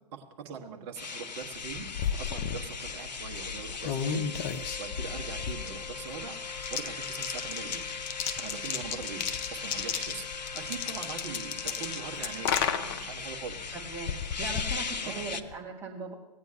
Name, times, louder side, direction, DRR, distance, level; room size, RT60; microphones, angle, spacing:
voice 1, 0.1-4.2 4.8-7.8 8.4-9.2 9.5-10.2 10.5-13.7 15.0-15.4, right 7 dB, 40° right, 2 dB, 1.5 m, -42 dB
sound 1, 1.0-15.4, left 5 dB, 80° left, 0.6 m, -39 dB
sound 2, 1.5-15.6, left 7 dB, 35° left, 0.7 m, -35 dB
Wind instrument woodwind instrument, 3.8-12.9, left 5 dB, 55° left, 1.6 m, -48 dB
voice 2, 13.7-16.1, right 4 dB, 10° right, -3 dB, 1.9 m, -39 dB
18.0 x 9.1 x 2.9 m, 0.98 s
figure-of-eight pair, 120°, 21 cm